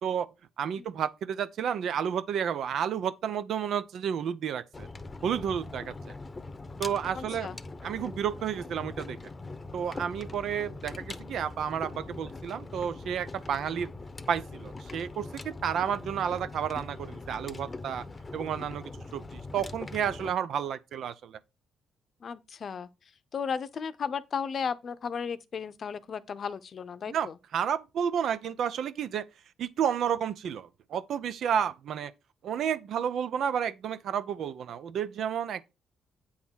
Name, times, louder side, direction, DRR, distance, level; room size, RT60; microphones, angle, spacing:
voice 1, 0.6-4.9 5.2-6.1 6.8-7.5 7.8-9.2 9.7-13.9 14.3-18.0 18.3-21.4 27.1-29.2 29.6-32.1 32.4-35.7, right 8 dB, 70° right, 0.8 m, -31 dB
sound 1, 4.7-20.3, left 3 dB, 25° left, 0.8 m, -42 dB
voice 2, 7.1-7.6 22.2-22.9 23.3-27.3, left 6 dB, 50° left, 0.8 m, -34 dB
8.8 x 3.7 x 6.3 m
cardioid pair, 90°, 0 cm